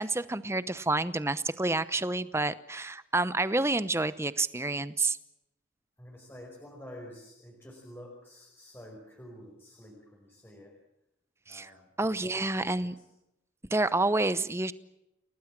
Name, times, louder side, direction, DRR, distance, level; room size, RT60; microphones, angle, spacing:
voice 1, 0.0-5.2 11.5-11.7 12.0-13.0 13.7-14.7, right 2 dB, 15° right, 15 dB, 0.8 m, -29 dB
voice 2, 6.0-10.7 11.5-13.1, equal, 10° left, -1 dB, 4.9 m, -49 dB
29.0 x 19.0 x 7.5 m, 0.88 s
head